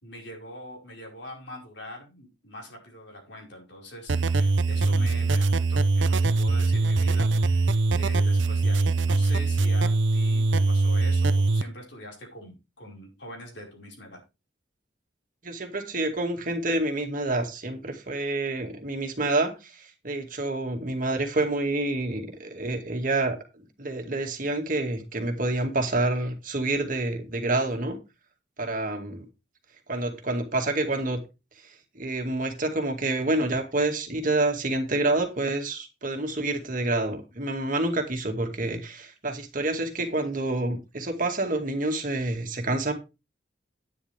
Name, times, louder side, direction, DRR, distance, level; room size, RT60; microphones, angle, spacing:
voice 1, 0.0-14.2, left 1 dB, 70° left, 0 dB, 5.1 m, -43 dB
sound 1, 4.1-11.6, right 3 dB, 80° right, 0.7 m, -22 dB
voice 2, 15.4-28.0 28.6-29.2 29.9-31.2 31.6-42.9, right 2 dB, 45° right, 4 dB, 2.1 m, -28 dB
11.0 x 9.6 x 3.5 m, 0.27 s
head